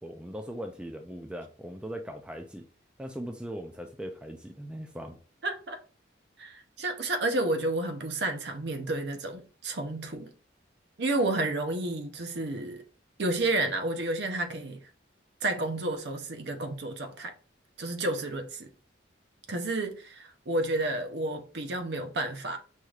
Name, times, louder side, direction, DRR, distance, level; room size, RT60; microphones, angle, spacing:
voice 1, 0.0-2.7 3.0-5.2, equal, 5° right, 0.3 m, -39 dB
voice 2, 5.4-5.8 6.4-10.3 11.0-12.8 13.2-14.8 15.4-17.3 17.8-18.7 19.5-22.6, right 2 dB, 60° right, 0.7 m, -31 dB
5.5 x 3.2 x 2.4 m
head